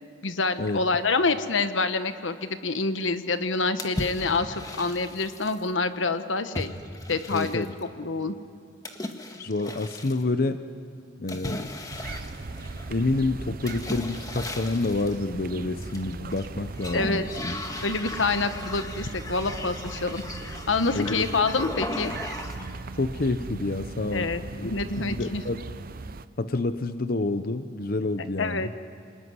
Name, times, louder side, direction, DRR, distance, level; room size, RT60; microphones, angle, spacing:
voice 1, 0.2-6.7 7.1-8.3 16.9-17.3 17.8-22.1 24.1-25.4 28.4-28.7, left 3 dB, 85° left, 10 dB, 1.3 m, -27 dB
sound 1, 3.8-5.6 6.5-7.8 8.8-10.2 11.3-13.0 13.7-15.2 15.8-16.5 16.8-22.8, left 1 dB, 20° left, 1.6 m, -37 dB
voice 2, 7.3-7.7 9.4-10.6 11.2-11.7 12.9-17.5 20.9-21.2 23.0-24.7 25.0-25.6 26.4-28.7, left 2 dB, 50° left, 10 dB, 0.8 m, -28 dB
sound 2, 11.9-26.3, right 3 dB, 50° right, 0.7 m, -39 dB
27.5 x 20.0 x 9.6 m, 2.5 s
head